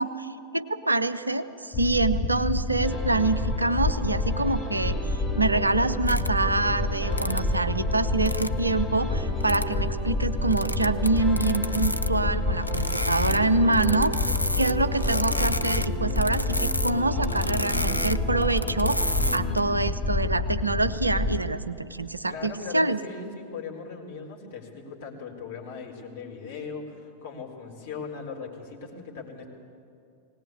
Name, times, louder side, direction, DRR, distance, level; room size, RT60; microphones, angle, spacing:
voice 1, 0.0-14.1 14.6-23.0, right 2 dB, 80° right, 12 dB, 0.7 m, -26 dB
sound 1, 1.7-21.4, left 2 dB, 25° left, 1.6 m, -28 dB
sound 2, 2.8-20.0, equal, 5° left, 3.6 m, -38 dB
sound 3, 6.1-6.3 7.1-7.4 8.0-8.5 9.4-9.7 10.5-12.1 12.5-13.4 13.7-16.9 17.2-19.6, equal, 90° left, 0.4 m, -30 dB
voice 2, 22.3-29.5, left 5 dB, 55° left, -1 dB, 4.2 m, -39 dB
19.5 x 18.5 x 8.5 m, 2.5 s
figure-of-eight pair, 90°, 0 cm